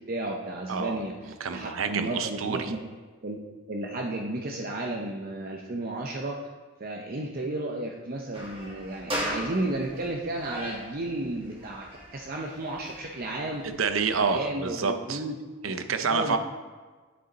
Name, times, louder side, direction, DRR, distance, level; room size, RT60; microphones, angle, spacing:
voice 1, 0.1-2.8 3.2-3.4 3.7-6.4 6.8-11.9 12.1-13.7 14.1-15.4 16.1-16.4, right 2 dB, 45° right, 0 dB, 0.7 m, -33 dB
voice 2, 0.7-1.0 1.4-2.7 13.6-15.2 15.6-16.4, right 5 dB, 80° right, 8 dB, 0.7 m, -28 dB
sound 1, 8.3-14.4, equal, 25° right, 2.0 m, -39 dB
9.5 x 6.9 x 4.0 m, 1.4 s
head